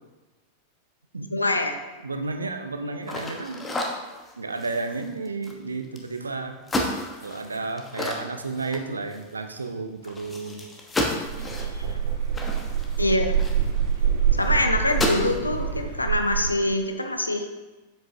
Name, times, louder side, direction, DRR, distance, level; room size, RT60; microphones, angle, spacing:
voice 1, 1.3-1.8 11.4-12.0 13.0-13.4 14.3-17.5, left 2 dB, 85° left, 5 dB, 0.7 m, -25 dB
voice 2, 2.0-3.7 4.4-6.6 7.2-10.6 12.5-12.8, right 3 dB, 75° right, 7 dB, 0.6 m, -32 dB
sound 1, 3.0-6.2 6.6-9.3 9.6-9.7 10.0-13.9 14.4-14.5 14.8-15.4, left 1 dB, 15° left, 1.0 m, -32 dB
sound 2, 11.2-16.5, right 8 dB, 60° right, 2.1 m, -25 dB
7.5 x 7.3 x 2.8 m, 1.2 s
figure-of-eight pair, 90°, 0 cm